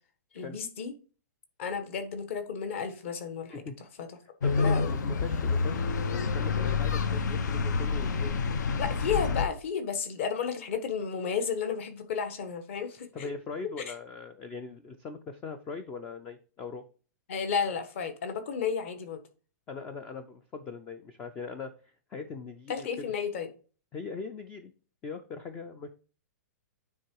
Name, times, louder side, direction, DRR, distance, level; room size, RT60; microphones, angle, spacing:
voice 1, 0.3-0.9 1.6-3.6 4.0-4.1 4.6-4.9 8.8-13.3 13.9-14.0 17.3-19.2 22.7-23.5, left 6 dB, 45° left, 8 dB, 1.3 m, -32 dB
sound 1, 4.4-9.4, left 4 dB, 80° left, 0.8 m, -28 dB
voice 2, 4.4-8.5 13.1-16.8 19.7-21.7 22.1-22.9 23.9-24.7 25.0-25.9, left 4 dB, 10° left, 9 dB, 0.3 m, -40 dB
9.5 x 3.7 x 4.6 m, 0.38 s
hypercardioid pair, 175°, 10 cm